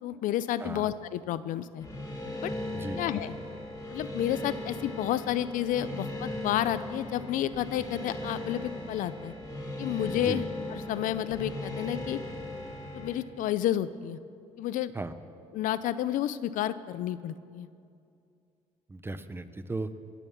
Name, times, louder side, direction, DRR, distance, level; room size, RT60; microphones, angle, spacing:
voice 1, 0.0-1.9 2.4-2.5 3.0-3.3 3.9-9.3 9.8-12.2 12.9-14.2 14.6-14.9 15.5-17.7, left 12 dB, 80° left, 15 dB, 0.5 m, -31 dB
sound 1, 1.8-13.1, left 1 dB, 25° left, 3.5 m, -38 dB
voice 2, 2.7-3.0 10.1-10.4 14.9-15.1 18.9-19.9, right 2 dB, 15° right, 12 dB, 0.7 m, -36 dB
19.5 x 7.2 x 7.2 m, 2.5 s
cardioid pair, 95°, 13 cm